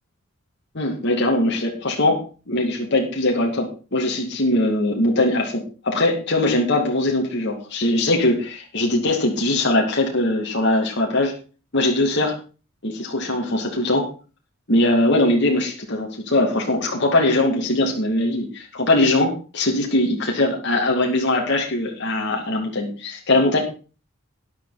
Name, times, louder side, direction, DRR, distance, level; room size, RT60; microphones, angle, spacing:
voice 1, 0.7-2.2 2.5-11.3 11.7-12.3 12.8-14.1 14.7-23.6, left 1 dB, 55° left, 0 dB, 2.6 m, -21 dB
12.5 x 10.5 x 4.3 m, 0.35 s
head